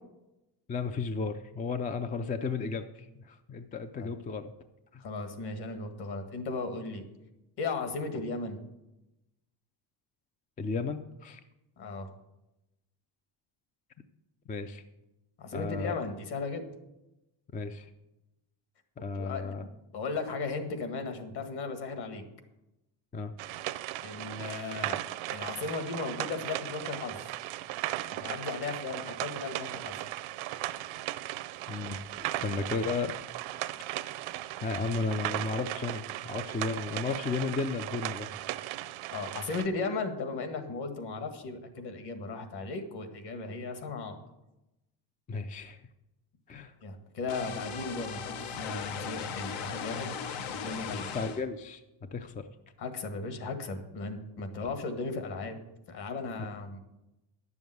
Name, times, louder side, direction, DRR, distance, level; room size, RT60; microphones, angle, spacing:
voice 1, 0.7-4.5 10.6-11.4 14.5-14.8 15.5-15.9 17.5-17.9 19.0-19.7 23.1-23.3 31.7-33.2 34.6-38.3 45.3-45.8 46.5-46.7 50.9-52.5 54.6-54.7, left 4 dB, 20° left, 9 dB, 0.3 m, -34 dB
voice 2, 5.0-7.0 7.6-8.6 11.8-12.1 15.4-16.7 19.1-22.2 24.0-25.0 25.3-27.2 28.1-30.1 39.1-44.2 46.8-50.1 50.5-51.1 52.8-55.6 55.9-56.8, left 3 dB, 50° left, 7 dB, 1.9 m, -36 dB
sound 1, 23.4-39.6, right 15 dB, 70° right, 0.7 m, -37 dB
sound 2, 47.3-51.4, left 7 dB, 75° left, 1.2 m, -38 dB
11.0 x 7.2 x 7.8 m, 0.96 s
cardioid pair, 145°, 49 cm